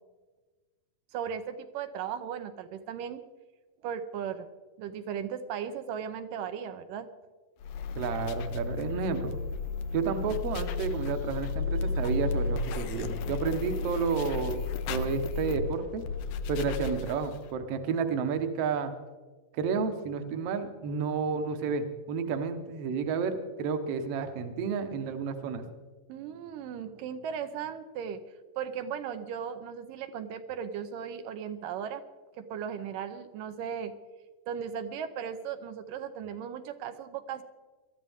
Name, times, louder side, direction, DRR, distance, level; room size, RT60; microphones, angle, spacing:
voice 1, 1.1-3.2 3.8-4.5 4.8-7.1 26.1-28.2 28.6-32.0 32.4-33.9 34.5-37.4, right 8 dB, 80° right, 8 dB, 2.3 m, -37 dB
sound 1, 7.6-17.5, left 4 dB, 75° left, 2.0 m, -33 dB
voice 2, 8.0-9.4 9.9-16.1 16.5-18.9 19.5-25.7, right 5 dB, 60° right, 7 dB, 1.7 m, -31 dB
22.0 x 13.0 x 3.6 m, 1.3 s
omnidirectional pair, 3.9 m